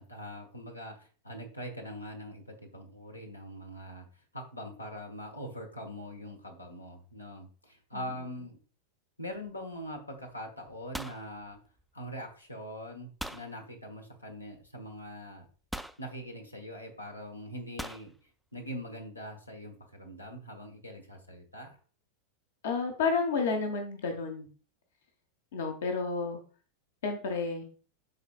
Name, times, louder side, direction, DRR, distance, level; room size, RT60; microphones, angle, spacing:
voice 1, 0.0-4.1 4.3-8.6 9.2-11.6 11.9-15.5 16.0-18.1 18.5-21.8, equal, 85° left, 3 dB, 1.1 m, -42 dB
sound 1, 9.3-9.6 9.9-10.3 10.6-12.2 13.2-13.5 14.7-14.8 15.7-16.1 17.8-18.1, right 1 dB, ahead, 0.4 m, -41 dB
voice 2, 22.6-24.5 25.5-26.4 27.0-27.6, left 4 dB, 60° left, 5 dB, 1.0 m, -31 dB
12.0 x 4.0 x 2.4 m, 0.40 s
figure-of-eight pair, 90°, 0 cm